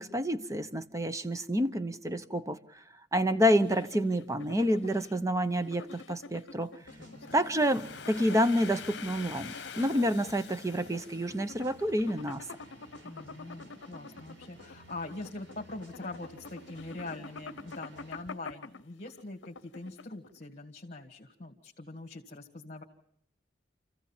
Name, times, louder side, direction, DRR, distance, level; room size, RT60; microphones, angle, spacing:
voice 1, 0.0-2.6 3.1-6.7 7.3-12.4, equal, 15° right, 0.8 m, -28 dB
sound 1, 3.5-20.4, left 4 dB, 85° left, 0.7 m, -48 dB
sound 2, 6.8-18.2, right 1 dB, 85° right, 3.9 m, -54 dB
Domestic sounds home sounds, 7.3-12.0, left 7 dB, 65° left, 1.1 m, -46 dB
voice 2, 13.0-22.8, left 2 dB, 40° left, 2.0 m, -43 dB
28.5 x 15.0 x 7.3 m
head